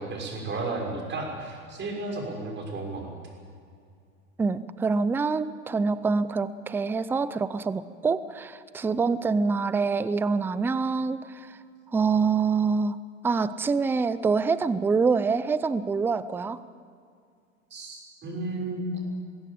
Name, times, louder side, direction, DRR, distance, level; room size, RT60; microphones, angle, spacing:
voice 1, 0.0-3.1 17.7-19.0, right 2 dB, 25° right, 1 dB, 6.2 m, -33 dB
voice 2, 4.4-11.5 11.9-13.0 13.2-16.6, right 4 dB, 5° right, 15 dB, 0.4 m, -25 dB
21.5 x 16.0 x 8.5 m, 2.3 s
hypercardioid pair, 115°, 41 cm